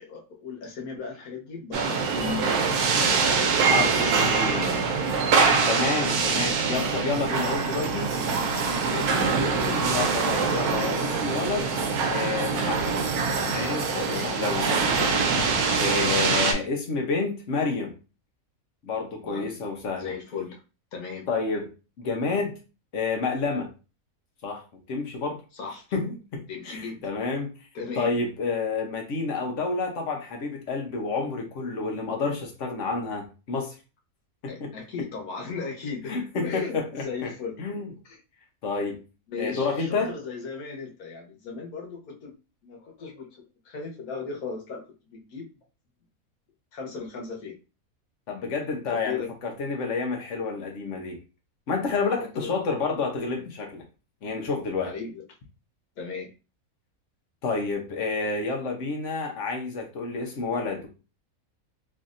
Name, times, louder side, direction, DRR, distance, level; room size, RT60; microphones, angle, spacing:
voice 1, 0.0-2.7 3.8-4.8 5.7-5.9 8.8-9.8 13.9-14.3 19.2-19.5 19.8-20.6 20.9-21.3 25.5-26.0 26.5-27.0 27.7-28.1 34.5-36.1 36.4-37.6 38.0-38.2 39.3-42.3 42.6-43.3 43.6-45.5 46.7-47.5 48.9-49.3 52.2-52.5 54.8-55.2 56.0-56.3, left 5 dB, 85° left, 1.4 m, -36 dB
sound 1, 1.7-16.5, right 5 dB, 85° right, 1.1 m, -24 dB
voice 2, 3.7-4.7 5.7-8.2 9.8-11.7 12.1-13.0 13.4-17.9 18.8-20.1 21.3-21.7 22.0-22.6 22.9-23.7 24.4-24.6 24.9-25.4 25.9-27.5 28.0-33.7 34.4-34.7 36.0-37.3 37.6-37.9 38.6-39.0 39.4-40.1 48.3-51.2 51.7-53.8 54.2-54.9 57.4-60.9, left 4 dB, 60° left, 1.1 m, -29 dB
3.2 x 2.7 x 2.5 m
omnidirectional pair, 1.5 m